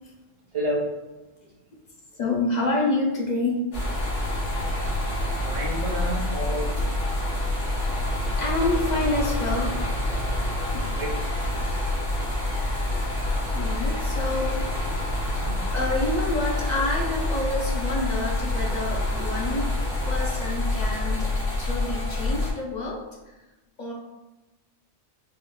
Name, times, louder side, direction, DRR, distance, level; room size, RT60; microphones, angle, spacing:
voice 1, 0.5-0.9 4.0-5.1 5.4-6.9 10.7-11.5 12.9-13.0 15.2-15.7 18.6-19.3, right 1 dB, 35° right, -3 dB, 0.7 m, -33 dB
voice 2, 2.2-3.6 8.4-9.8 10.7-10.9 13.5-14.8 15.7-19.7 20.1-21.3 21.6-23.3 23.8-23.9, left 2 dB, 50° left, -2 dB, 0.6 m, -28 dB
sound 1, 3.7-22.5, left 1 dB, 85° left, 1.3 m, -27 dB
Bird, 11.1-14.9 15.3-17.9 18.4-19.0, right 2 dB, 65° right, 0.9 m, -50 dB
4.1 x 2.3 x 2.3 m, 1.1 s
omnidirectional pair, 1.1 m